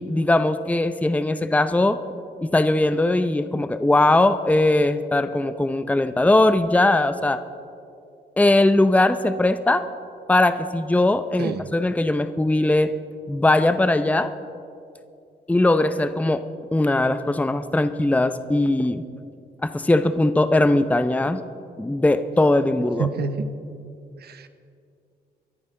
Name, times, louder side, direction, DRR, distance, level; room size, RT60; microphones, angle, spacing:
voice 1, 0.0-2.0 2.4-7.4 8.4-9.8 10.3-12.9 13.3-14.3 15.5-16.4 16.7-19.0 19.6-21.4 21.8-23.1, left 2 dB, 10° left, 11 dB, 0.6 m, -20 dB
voice 2, 11.4-11.7 23.0-23.5 24.1-24.5, right 5 dB, 65° right, 10 dB, 1.0 m, -28 dB
24.0 x 10.5 x 3.8 m, 2.5 s
supercardioid pair, 65°, 18 cm